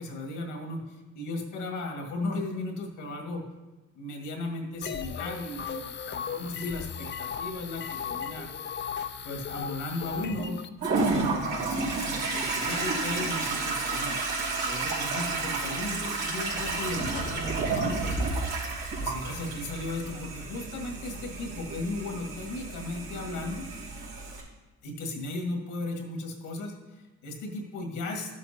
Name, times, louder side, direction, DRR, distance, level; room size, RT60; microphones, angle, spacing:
voice 1, 0.0-3.4 4.0-8.5 9.2-10.6 11.1-14.2 14.7-18.3 19.0-23.7 24.8-28.4, left 2 dB, 90° left, 1 dB, 1.9 m, -36 dB
sound 1, 4.8-10.7, left 7 dB, 35° left, 0.5 m, -36 dB
Toilet flush, 10.8-24.4, right 3 dB, 80° right, 3.4 m, -31 dB
13.0 x 7.4 x 2.8 m, 1.1 s
cardioid pair, 90°, 30 cm